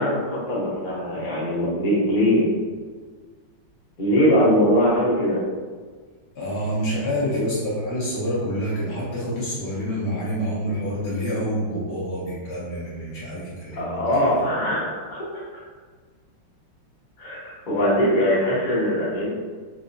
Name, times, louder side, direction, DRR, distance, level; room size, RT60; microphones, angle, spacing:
voice 1, 0.0-2.5 4.0-5.4 7.3-7.5 13.7-15.2 17.2-19.3, equal, 35° left, -8 dB, 0.8 m, -21 dB
voice 2, 6.3-14.5, equal, 65° left, -7 dB, 1.3 m, -27 dB
4.6 x 2.3 x 2.5 m, 1.5 s
omnidirectional pair, 2.2 m